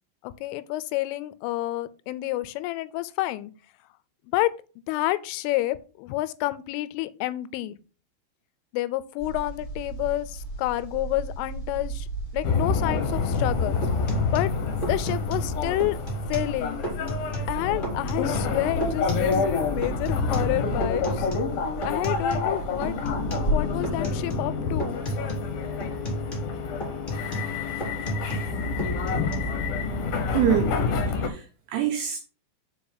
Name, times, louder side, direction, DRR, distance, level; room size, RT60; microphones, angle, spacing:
voice 1, 0.2-3.5 4.3-4.5 4.9-7.8 8.7-12.1 12.3-13.8 14.3-14.5 14.9-16.0 16.3-16.8 17.5-21.3 21.8-22.9 23.5-25.0 26.7-26.8 28.8-28.9, left 16 dB, 90° left, 3.1 m, -29 dB
sound 1, 9.2-24.1, right 2 dB, 15° left, 2.0 m, -36 dB
sound 2, 12.4-31.3, left 4 dB, 70° left, 2.2 m, -28 dB
sound 3, 13.3-13.5 13.8-15.5 15.8-16.6 16.8-17.5 17.8-19.6 19.8-22.5 22.8-23.5 23.8-24.5 24.8-25.5 25.8-28.5 28.8-29.3, right 1 dB, 50° left, 0.5 m, -33 dB
voice 2, 30.3-30.8 31.2-32.2, right 9 dB, 80° right, 2.4 m, -25 dB
7.1 x 4.7 x 5.4 m
omnidirectional pair, 5.6 m